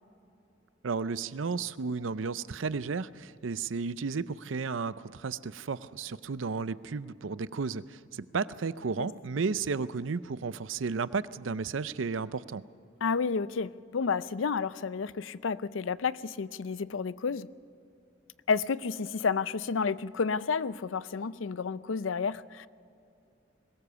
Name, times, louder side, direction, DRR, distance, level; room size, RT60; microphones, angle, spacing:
voice 1, 0.8-12.6, right 4 dB, 85° right, 16 dB, 0.6 m, -33 dB
voice 2, 13.0-17.5 18.5-22.7, left 5 dB, 85° left, 17 dB, 0.5 m, -31 dB
21.5 x 19.0 x 6.9 m, 2.7 s
head